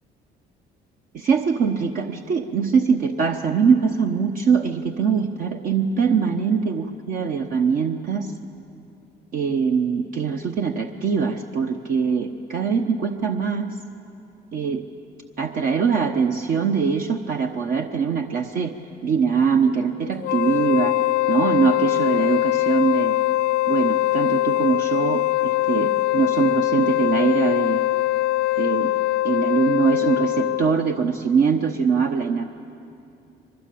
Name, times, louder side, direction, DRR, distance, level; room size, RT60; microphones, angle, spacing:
voice 1, 1.1-8.3 9.3-13.7 14.5-14.8 15.4-18.7 19.0-21.0 21.3-23.2 23.7-27.8 28.6-28.9 29.2-32.4, right 6 dB, 55° right, 4 dB, 1.0 m, -22 dB
Wind instrument woodwind instrument, 20.2-30.8, left 15 dB, 75° left, 0.5 m, -22 dB
23.5 x 20.5 x 8.5 m, 2.6 s
cardioid pair, 110°, 17 cm